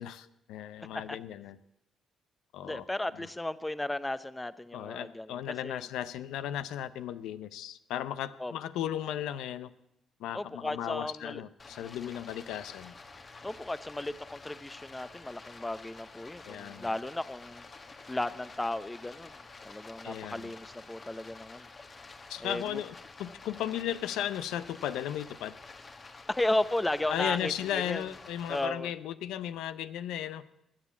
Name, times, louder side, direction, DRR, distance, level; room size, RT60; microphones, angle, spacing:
voice 1, 0.0-1.6 2.5-2.8 3.2-3.3 4.7-9.7 10.2-12.9 16.4-16.9 20.0-20.5 22.3-22.9 23.2-25.6 27.1-30.4, left 11 dB, 90° left, 14 dB, 0.6 m, -36 dB
voice 2, 2.6-5.4 5.6-5.9 8.4-8.5 10.3-11.4 13.4-17.6 18.1-21.7 22.4-22.8 26.3-28.0 28.5-28.9, left 1 dB, 15° left, 15 dB, 0.6 m, -34 dB
Stream, 11.6-28.7, left 3 dB, 35° left, 1.3 m, -50 dB
20.5 x 7.5 x 8.3 m, 0.84 s
cardioid pair, 90°, 0 cm